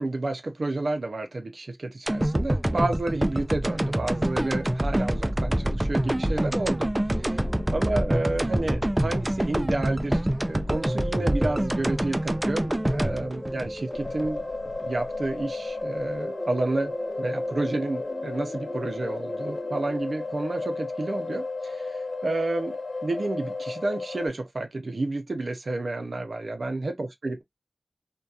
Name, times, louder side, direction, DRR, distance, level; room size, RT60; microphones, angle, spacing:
voice 1, 0.0-7.4 7.7-12.6 12.9-14.4 14.9-27.4, right 2 dB, 80° right, 0.5 m, -30 dB
sound 1, 2.1-14.3 14.7-14.8, right 1 dB, 20° right, 0.3 m, -26 dB
sound 2, 7.1-20.0, equal, 20° left, 0.7 m, -39 dB
sound 3, 13.9-24.3, left 3 dB, 80° left, 0.4 m, -34 dB
2.7 x 2.2 x 2.3 m
wide cardioid pair, 70°, 0 cm